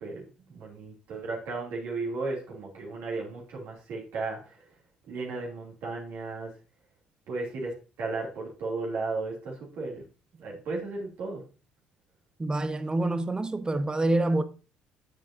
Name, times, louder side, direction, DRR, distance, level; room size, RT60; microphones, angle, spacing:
voice 1, 0.0-4.6 5.1-6.6 7.3-10.0 10.4-11.5, right 3 dB, 60° right, 3.0 m, -35 dB
voice 2, 12.4-14.4, right 2 dB, 20° right, 1.0 m, -26 dB
10.0 x 7.4 x 2.8 m
figure-of-eight pair, 50°, 4 cm